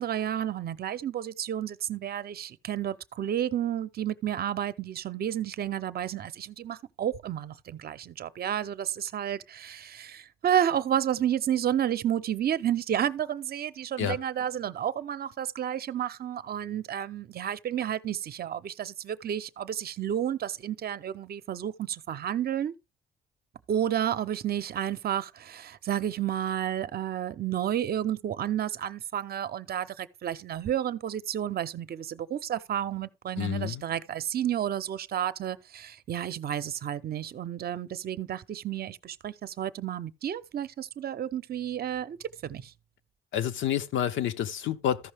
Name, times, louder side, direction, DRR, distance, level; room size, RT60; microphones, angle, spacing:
voice 1, 0.0-22.7 23.7-42.7, right 10 dB, 50° right, 0.7 m, -31 dB
voice 2, 33.4-33.8 43.3-45.1, left 10 dB, 75° left, 0.7 m, -29 dB
14.0 x 5.5 x 3.4 m
cardioid pair, 90°, 20 cm